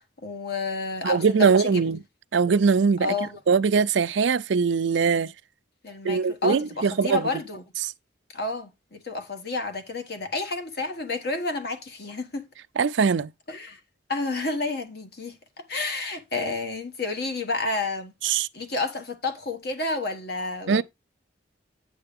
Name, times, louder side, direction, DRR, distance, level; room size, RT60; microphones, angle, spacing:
voice 1, 0.0-1.8 3.0-3.4 5.8-7.6 8.3-12.5 13.5-13.8 14.1-20.8, left 3 dB, 55° left, 1.4 m, -30 dB
voice 2, 1.0-2.0 2.3-5.3 6.0-7.2 7.8-7.9 12.8-13.3 18.2-18.5 20.7-20.8, right 5 dB, 70° right, 0.5 m, -22 dB
9.6 x 6.7 x 3.6 m
head